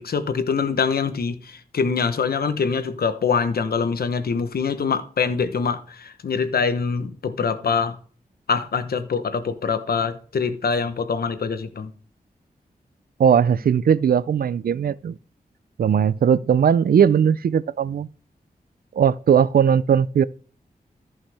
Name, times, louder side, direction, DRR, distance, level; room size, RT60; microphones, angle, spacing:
voice 1, 0.0-8.0 8.5-11.9, left 5 dB, 80° left, 1.0 m, -24 dB
voice 2, 13.2-15.2 15.8-18.1 18.9-20.2, right 8 dB, 70° right, 0.4 m, -18 dB
14.0 x 5.7 x 3.5 m
wide cardioid pair, 75°, 16 cm